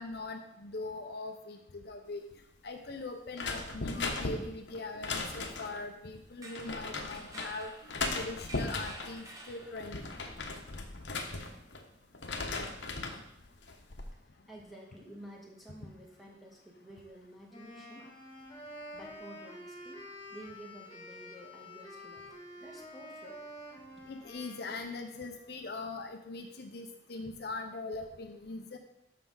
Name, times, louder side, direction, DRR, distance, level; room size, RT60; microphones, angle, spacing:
voice 1, 0.0-2.2 2.6-10.0 24.1-28.8, left 3 dB, 60° left, 4 dB, 0.8 m, -41 dB
sound 1, 3.3-5.8 6.6-7.5 7.9-9.2 9.6-11.8 12.1-13.2 13.7-14.1, left 3 dB, 75° left, 1.1 m, -37 dB
sound 2, 6.3-10.2, right 1 dB, 20° right, 1.2 m, -50 dB
voice 2, 14.5-18.1 18.9-20.0 20.3-23.4 24.0-24.1, right 1 dB, ahead, -4 dB, 1.9 m, -51 dB
Wind instrument woodwind instrument, 17.5-25.6, equal, 25° left, 2.0 m, -48 dB
13.0 x 5.7 x 3.9 m, 0.79 s
head